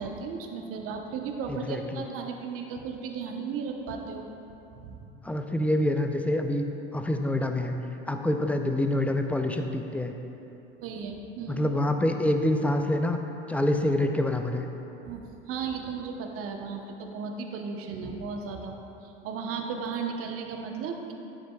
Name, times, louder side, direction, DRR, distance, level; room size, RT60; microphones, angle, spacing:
voice 1, 0.0-4.2 4.8-5.0 10.7-11.6 15.0-18.8 19.0-21.1, right 5 dB, 50° right, 3 dB, 0.9 m, -35 dB
voice 2, 1.5-2.0 5.2-6.7 6.9-10.1 11.5-13.2 13.5-14.6, left 1 dB, 5° left, 5 dB, 0.4 m, -26 dB
9.3 x 7.6 x 2.3 m, 2.9 s
hypercardioid pair, 80°, 29 cm